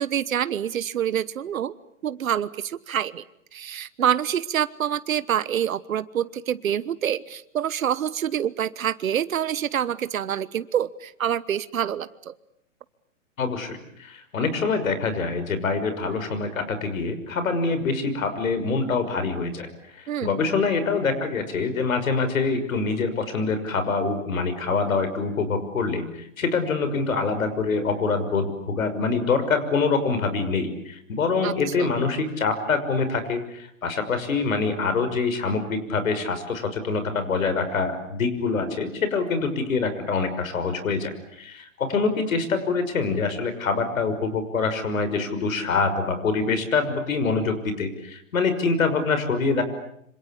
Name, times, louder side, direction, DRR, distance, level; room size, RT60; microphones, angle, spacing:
voice 1, 0.0-1.7 2.0-3.2 3.5-12.3 20.1-20.3 31.4-31.9, right 9 dB, 85° right, 16 dB, 1.2 m, -26 dB
voice 2, 13.4-19.7 19.9-49.6, left 4 dB, 80° left, 10 dB, 6.0 m, -25 dB
26.5 x 26.5 x 8.6 m, 0.74 s
hypercardioid pair, 145°, 40 cm